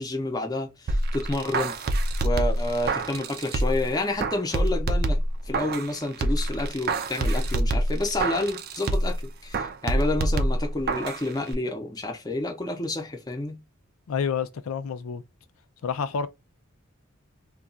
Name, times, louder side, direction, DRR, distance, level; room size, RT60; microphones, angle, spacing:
voice 1, 0.0-1.8 2.2-5.2 5.5-13.6, left 2 dB, 20° left, 0.6 m, -29 dB
sound 1, 0.9-3.9 4.2-5.9 6.2-9.2 9.5-11.2 11.5-11.6, right 1 dB, 50° right, 0.4 m, -26 dB
voice 2, 14.1-15.2 15.8-16.3, left 6 dB, 85° left, 0.4 m, -28 dB
2.3 x 2.3 x 3.8 m
head